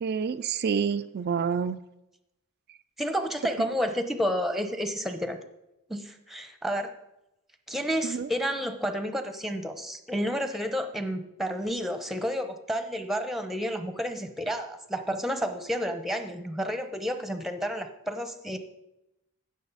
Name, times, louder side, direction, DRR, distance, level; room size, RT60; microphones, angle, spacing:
voice 1, 0.0-1.8 8.0-8.3, right 6 dB, 50° right, 9 dB, 0.3 m, -28 dB
voice 2, 3.0-5.4 5.9-6.9 7.7-18.6, equal, ahead, 7 dB, 0.9 m, -30 dB
15.5 x 6.5 x 4.1 m, 0.88 s
head